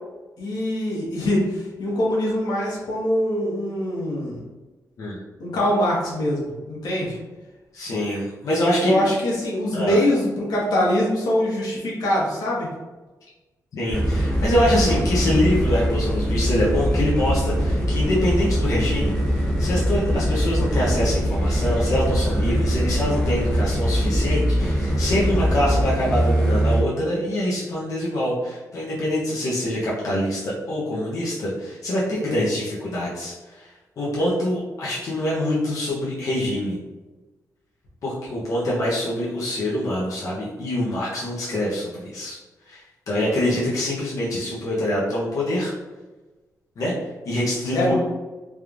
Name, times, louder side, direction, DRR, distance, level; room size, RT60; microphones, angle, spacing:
voice 1, 0.4-4.4 5.4-7.2 8.8-12.7 20.0-20.2 25.2-25.4 32.2-32.4 47.7-47.9, left 1 dB, 90° left, -5 dB, 1.2 m, -23 dB
voice 2, 7.7-8.9 9.7-10.0 13.7-19.1 19.6-33.7 34.0-36.8 38.0-42.4 42.7-42.8 43.1-45.7 46.8-46.9 47.3-47.9, left 1 dB, 55° left, -7 dB, 0.8 m, -25 dB
sound 1, 13.9-26.8, equal, 10° left, 0.9 m, -22 dB
3.4 x 3.1 x 2.4 m, 1.2 s
wide cardioid pair, 180°, 7 cm